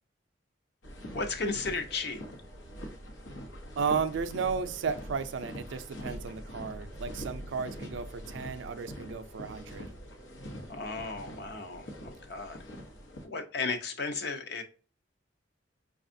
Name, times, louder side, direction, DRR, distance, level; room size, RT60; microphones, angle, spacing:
sound 1, 0.8-13.3, equal, 90° left, 0.9 m, -44 dB
voice 1, 1.1-2.2 10.7-12.6 13.2-14.6, left 4 dB, 60° left, 0.6 m, -34 dB
voice 2, 3.8-9.9, right 6 dB, 70° right, 0.4 m, -34 dB
5.0 x 2.3 x 2.5 m
head